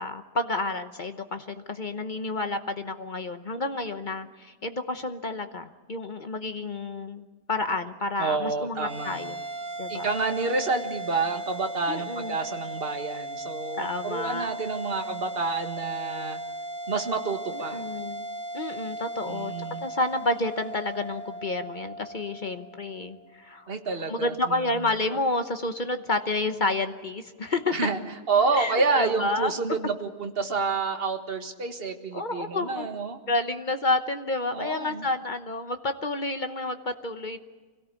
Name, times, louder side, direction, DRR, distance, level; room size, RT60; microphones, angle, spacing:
voice 1, 0.0-9.4 9.8-10.1 11.9-12.4 13.8-14.6 17.7-18.3 18.5-19.5 19.8-23.7 24.1-27.7 28.5-29.5 32.1-32.9 33.3-37.4, left 2 dB, 35° left, 8 dB, 0.9 m, -30 dB
voice 2, 8.2-9.2 9.9-16.4 16.9-17.8 19.3-19.8 23.7-24.7 27.7-28.0 28.3-33.2 34.5-35.1, right 4 dB, 35° right, 5 dB, 1.8 m, -29 dB
sound 1, 8.8-23.4, right 1 dB, 80° right, 3.1 m, -37 dB
25.0 x 17.5 x 8.3 m, 1.3 s
omnidirectional pair, 1.8 m